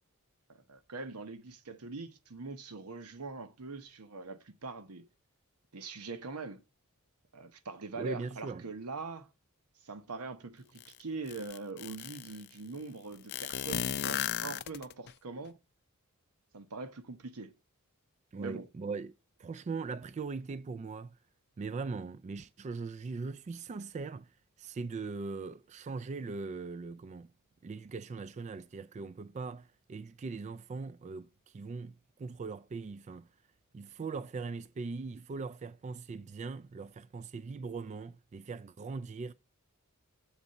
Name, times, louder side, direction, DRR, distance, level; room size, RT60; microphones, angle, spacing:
voice 1, 0.5-5.1 5.7-6.6 7.3-9.3 9.8-15.6 16.5-17.5 18.4-18.7, right 3 dB, 90° right, 0.9 m, -43 dB
voice 2, 8.0-8.6 18.3-19.1 19.4-21.2 21.6-24.3 24.6-27.3 27.6-33.3 33.7-39.3, right 4 dB, 30° right, 0.3 m, -40 dB
sound 1, 10.8-10.9 11.3-12.4 13.3-15.1, left 10 dB, 50° left, 0.4 m, -35 dB
7.2 x 4.1 x 6.4 m
head